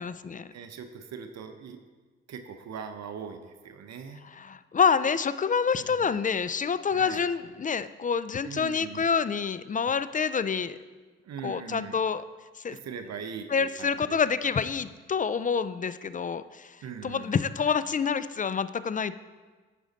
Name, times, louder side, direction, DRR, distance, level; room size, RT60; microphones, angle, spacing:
voice 1, 0.0-0.5 4.2-10.8 11.4-12.2 12.6-12.8 13.5-16.8 17.0-19.2, left 6 dB, 25° left, 15 dB, 0.4 m, -27 dB
voice 2, 0.5-1.8 2.3-4.2 5.8-6.1 6.9-7.2 8.4-9.1 11.2-12.0 12.7-14.2 16.8-17.4, right 6 dB, 60° right, 7 dB, 0.7 m, -41 dB
9.7 x 5.0 x 4.1 m, 1.4 s
hypercardioid pair, 40°, 30 cm